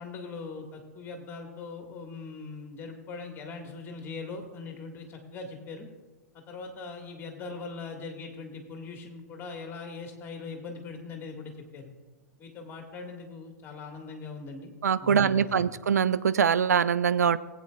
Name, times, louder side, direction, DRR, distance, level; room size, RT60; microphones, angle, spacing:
voice 1, 0.0-5.9 6.3-11.9 12.4-14.7 15.0-15.7, left 4 dB, 25° left, 4 dB, 1.7 m, -41 dB
voice 2, 14.8-17.4, right 7 dB, 70° right, 15 dB, 0.4 m, -23 dB
19.5 x 8.4 x 2.3 m, 1.2 s
figure-of-eight pair, 100°, 9 cm